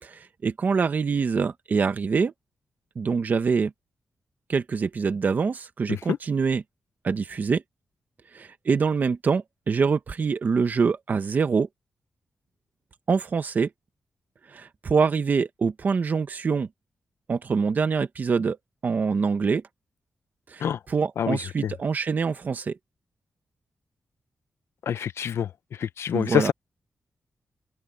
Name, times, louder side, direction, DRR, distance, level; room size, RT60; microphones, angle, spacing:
voice 1, 0.0-2.3 2.9-3.7 4.5-6.6 7.0-7.6 8.3-11.7 13.1-13.7 14.5-16.7 17.3-18.6 18.8-19.6 20.5-22.8 26.1-26.5, right 5 dB, 45° right, 1.5 m, -25 dB
voice 2, 24.9-25.5 25.8-26.5, left 9 dB, 80° left, 0.7 m, -25 dB
open air
wide cardioid pair, 175°, 4 cm